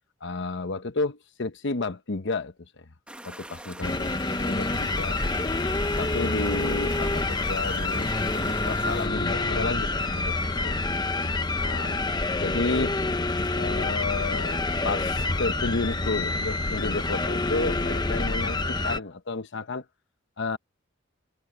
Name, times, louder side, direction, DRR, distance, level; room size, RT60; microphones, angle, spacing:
voice 1, 0.2-2.5 3.2-4.1 4.5-5.2 6.0-10.8 11.6-12.0 12.4-13.0 13.6-19.8 20.4-20.6, left 3 dB, 60° left, 1.0 m, -31 dB
sound 1, 3.1-9.1, right 1 dB, 5° right, 1.2 m, -43 dB
sound 2, 3.8-19.0, left 2 dB, 20° left, 0.9 m, -27 dB
head